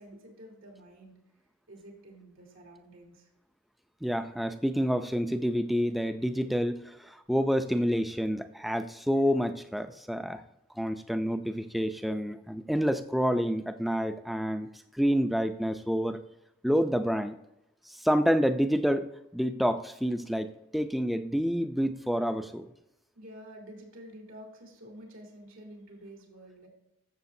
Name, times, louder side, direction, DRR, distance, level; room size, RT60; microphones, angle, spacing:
voice 1, 0.0-3.3 23.1-26.7, right 1 dB, 85° right, -2 dB, 3.1 m, -49 dB
voice 2, 4.0-10.4 10.8-14.7 14.9-16.2 16.6-17.4 17.9-22.7, equal, ahead, 9 dB, 0.4 m, -28 dB
12.5 x 7.3 x 2.7 m, 0.88 s
head